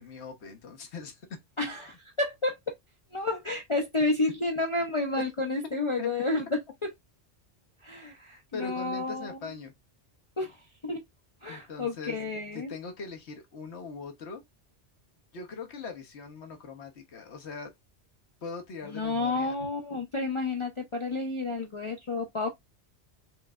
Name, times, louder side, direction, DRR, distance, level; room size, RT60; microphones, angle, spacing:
voice 1, 0.0-1.4 6.0-6.1 8.5-9.7 11.5-12.2 12.5-14.4 15.3-17.7 18.4-19.6, left 4 dB, 65° left, 1.4 m, -41 dB
voice 2, 1.6-2.6 3.1-6.6 7.8-9.4 10.4-11.0 11.4-12.7 18.8-22.5, left 2 dB, 30° left, 0.7 m, -30 dB
5.1 x 3.2 x 2.4 m
omnidirectional pair, 1.2 m